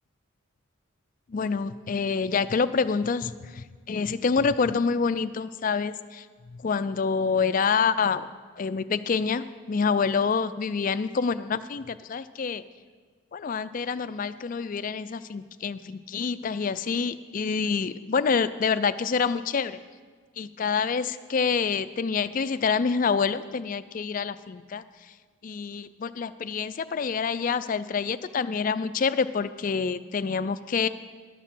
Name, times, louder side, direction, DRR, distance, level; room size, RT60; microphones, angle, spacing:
voice 1, 1.3-8.3 8.6-12.6 13.3-19.8 20.4-24.8 25.4-30.9, left 5 dB, 40° left, 13 dB, 0.3 m, -27 dB
11.5 x 6.5 x 7.5 m, 1.5 s
head